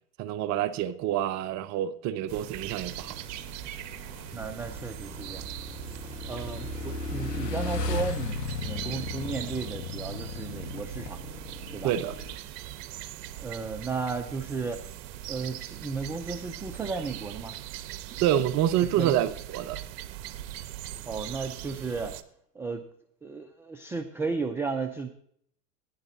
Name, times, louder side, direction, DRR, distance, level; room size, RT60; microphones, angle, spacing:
voice 1, 0.2-3.2 11.8-12.1 18.2-19.8, right 11 dB, 35° right, 0.6 m, -27 dB
sound 1, 2.3-22.2, right 13 dB, 50° right, 1.0 m, -41 dB
Motorcycle / Engine, 2.6-12.4, left 3 dB, 90° left, 1.5 m, -37 dB
voice 2, 4.3-5.4 6.3-11.2 11.7-11.9 13.4-14.8 15.3-17.6 18.1-18.2 18.9-19.2 21.1-22.2 22.5-22.8 23.2-25.1, right 4 dB, 5° right, 0.3 m, -34 dB
15.0 x 10.0 x 2.7 m
hypercardioid pair, 105°, 47 cm